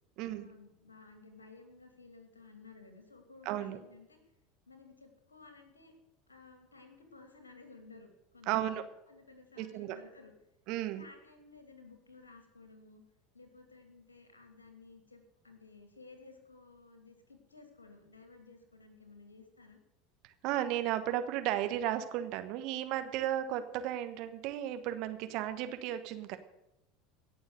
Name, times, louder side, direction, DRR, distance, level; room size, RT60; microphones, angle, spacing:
voice 1, 0.2-4.2 4.7-5.9 6.3-10.3 10.8-13.0 13.3-19.8, left 3 dB, 85° left, 5 dB, 2.7 m, -56 dB
voice 2, 3.4-3.8 8.5-8.8 9.6-10.0 10.7-11.0 20.2-26.4, right 12 dB, 55° right, 10 dB, 1.3 m, -34 dB
17.5 x 7.1 x 6.7 m, 0.92 s
figure-of-eight pair, 75°, 0 cm